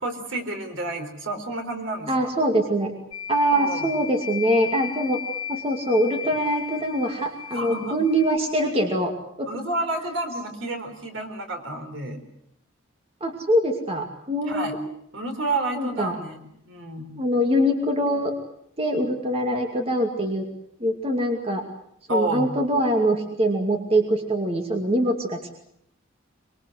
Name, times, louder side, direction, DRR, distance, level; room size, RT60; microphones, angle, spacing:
voice 1, 0.0-2.3 3.5-3.9 7.5-7.9 8.6-8.8 9.5-12.2 14.4-14.7 15.1-17.1 22.1-22.5, right 2 dB, 65° right, 6 dB, 4.2 m, -30 dB
voice 2, 2.1-2.9 3.3-5.2 5.5-9.5 13.2-14.8 15.7-16.2 17.2-18.3 18.8-20.5 20.8-21.6 22.1-25.5, equal, 30° right, 3 dB, 2.4 m, -23 dB
sound 1, 3.1-8.4, left 8 dB, 65° left, 4.3 m, -35 dB
24.0 x 23.0 x 7.9 m, 0.73 s
head